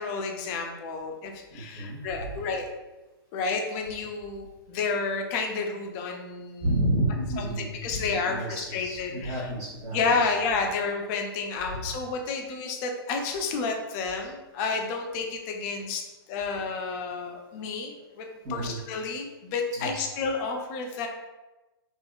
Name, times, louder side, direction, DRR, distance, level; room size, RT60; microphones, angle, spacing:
voice 1, 0.0-2.7 3.3-6.7 7.4-9.4 9.9-21.1, left 4 dB, 35° left, 3 dB, 0.4 m, -31 dB
voice 2, 1.5-2.3 6.6-10.3 11.7-11.8 18.4-18.8 19.7-20.0, right 1 dB, 45° right, -9 dB, 1.1 m, -31 dB
2.7 x 2.4 x 2.3 m, 1.1 s
hypercardioid pair, 115°, 13 cm